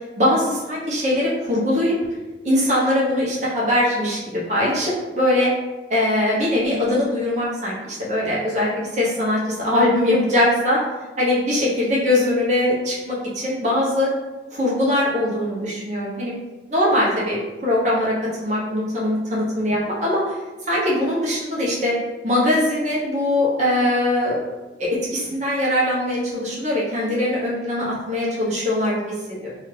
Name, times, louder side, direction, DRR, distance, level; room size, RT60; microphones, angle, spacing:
voice 1, 0.2-1.9 2.4-5.5 5.9-10.8 11.2-14.1 14.5-16.3 16.7-20.2 20.7-21.9 22.2-24.5 24.8-29.1 29.4-29.5, left 1 dB, 40° right, -6 dB, 0.9 m, -21 dB
2.7 x 2.4 x 3.2 m, 1.2 s
head